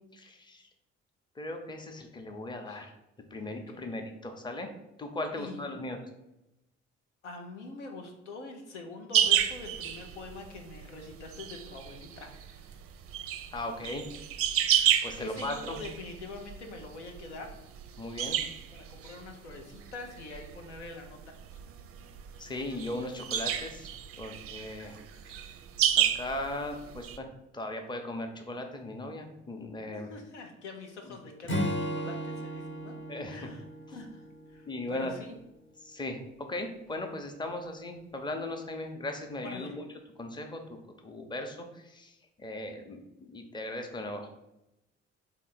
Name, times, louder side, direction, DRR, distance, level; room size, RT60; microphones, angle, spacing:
voice 1, 0.1-0.7 1.4-2.9 3.3-4.7 5.0-6.0 13.5-14.0 15.0-15.8 18.0-18.4 22.4-23.9 24.2-25.0 25.3-25.5 26.0-27.3 27.5-30.1 31.1-31.2 33.1-33.4 34.7-35.1 35.8-36.2 36.5-39.8 40.2-40.6 41.0-44.3, left 2 dB, 15° left, 4 dB, 0.6 m, -38 dB
voice 2, 3.4-4.0 5.3-5.8 7.2-12.7 15.2-17.5 18.7-21.2 29.9-32.9 33.3-33.6 33.9-35.4 39.4-39.7, left 3 dB, 85° left, 3 dB, 0.5 m, -44 dB
sound 1, 9.1-27.2, right 10 dB, 40° right, 0.4 m, -32 dB
Acoustic guitar / Strum, 31.5-35.0, equal, 40° left, 0.9 m, -35 dB
3.6 x 2.5 x 4.1 m, 0.92 s
figure-of-eight pair, 45°, 34 cm